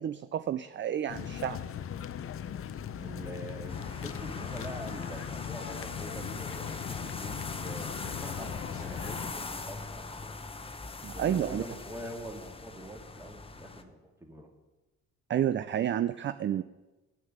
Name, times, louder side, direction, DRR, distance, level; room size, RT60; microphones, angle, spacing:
voice 1, 0.0-1.6 11.0-11.6 15.3-16.6, right 10 dB, 40° right, 13 dB, 0.4 m, -30 dB
sound 1, 1.1-9.3, left 9 dB, 45° left, 0.6 m, -39 dB
voice 2, 3.0-10.3 11.1-14.5, right 1 dB, 10° right, 2 dB, 2.2 m, -45 dB
sound 2, 3.7-13.8, left 3 dB, 20° left, 0.8 m, -41 dB
8.9 x 6.5 x 8.0 m, 1.1 s
cardioid pair, 90°, 30 cm